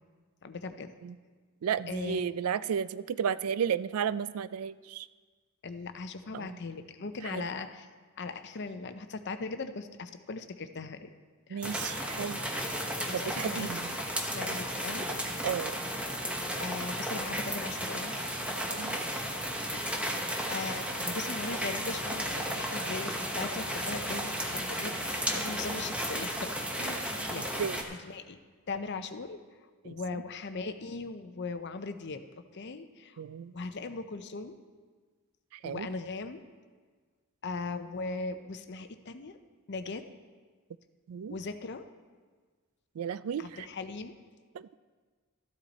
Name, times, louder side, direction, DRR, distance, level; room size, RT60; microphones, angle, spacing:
voice 1, 0.4-0.9 1.9-2.3 5.6-7.9 8.2-11.1 11.5-11.8 13.1-15.2 16.6-18.2 18.9-19.2 19.7-26.5 26.8-27.5 28.0-28.4 28.7-29.4 29.8-32.2 32.5-33.2 33.5-34.6 35.6-36.4 37.4-39.4 39.7-40.0 41.3-41.9 43.4-44.1, left 3 dB, 50° left, 9 dB, 0.6 m, -39 dB
voice 2, 1.6-5.1 6.3-6.6 7.3-7.4 11.5-12.4 13.1-14.0 15.4-15.8 18.7-19.0 27.4-27.8 29.8-30.0 33.2-33.5 35.5-35.9 41.1-41.4 43.0-43.7 44.5-44.7, right 7 dB, 80° right, 17 dB, 0.4 m, -33 dB
sound 1, 11.6-27.8, equal, 5° right, 0.9 m, -34 dB
13.5 x 9.7 x 4.1 m, 1.5 s
head